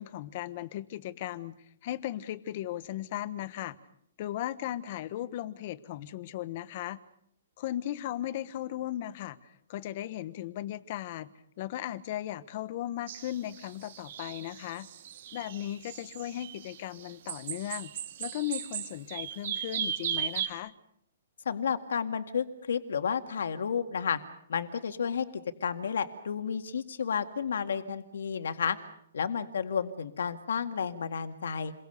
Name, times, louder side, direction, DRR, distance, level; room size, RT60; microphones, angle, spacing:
voice 1, 0.0-1.6 1.8-3.8 4.2-7.0 7.6-11.3 11.6-14.9 15.3-17.9 18.2-20.7, left 13 dB, 35° left, 16 dB, 1.2 m, -37 dB
sound 1, 13.1-20.5, right 9 dB, 45° right, 2.2 m, -37 dB
voice 2, 21.5-24.2 24.5-25.3 25.6-28.8 29.1-31.7, left 7 dB, 80° left, 8 dB, 2.0 m, -31 dB
29.0 x 23.0 x 6.8 m, 0.71 s
hypercardioid pair, 170°, 0 cm